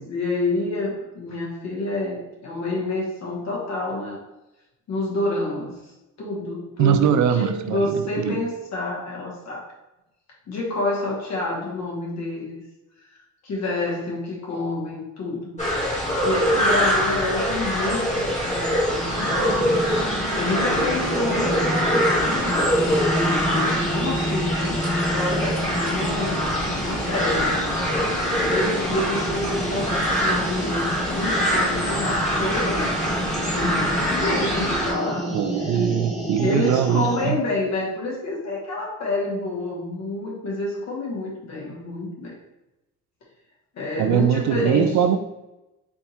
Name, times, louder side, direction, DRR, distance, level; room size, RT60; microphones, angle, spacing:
voice 1, 0.0-4.2 4.9-5.8 6.2-9.7 10.5-12.6 13.4-15.6 16.2-19.5 20.0-26.4 26.8-27.7 28.4-33.0 33.5-35.4 36.4-42.3 43.7-45.0, left 2 dB, 55° left, -3 dB, 1.4 m, -28 dB
voice 2, 6.8-8.4 35.3-37.4 44.0-45.2, right 9 dB, 60° right, 9 dB, 0.5 m, -21 dB
sound 1, 15.6-34.9, equal, 20° left, 1.4 m, -24 dB
sound 2, 19.0-37.3, equal, ahead, 1.5 m, -29 dB
3.5 x 2.6 x 4.3 m, 0.95 s
cardioid pair, 110°, 33 cm